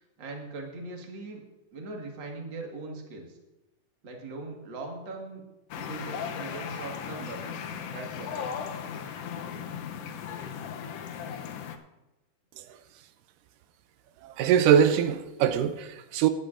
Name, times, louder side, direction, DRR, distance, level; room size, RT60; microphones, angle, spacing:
voice 1, 0.0-1.4 1.7-3.4 4.0-5.4 5.8-7.6 7.9-8.7, right 3 dB, 40° right, 2.0 m, -40 dB
sound 1, 5.7-11.8, left 7 dB, 85° left, 1.3 m, -37 dB
voice 2, 14.2-16.3, right 8 dB, 85° right, 2.3 m, -22 dB
17.5 x 11.0 x 2.5 m
omnidirectional pair, 3.7 m